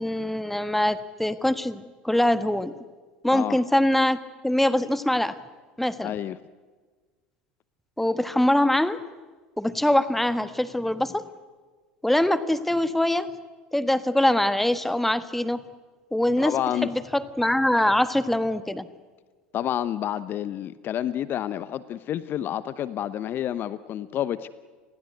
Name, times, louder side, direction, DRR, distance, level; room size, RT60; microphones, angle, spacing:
voice 1, 0.0-2.7 3.2-5.4 5.8-6.1 8.0-9.0 9.6-11.2 12.0-13.3 13.7-15.6 16.1-16.5 16.8-18.9, left 1 dB, 5° left, 13 dB, 1.4 m, -23 dB
voice 2, 6.0-6.4 16.4-16.9 19.5-24.5, left 11 dB, 40° left, 16 dB, 0.9 m, -29 dB
29.5 x 20.5 x 8.1 m, 1.4 s
figure-of-eight pair, 75°, 5 cm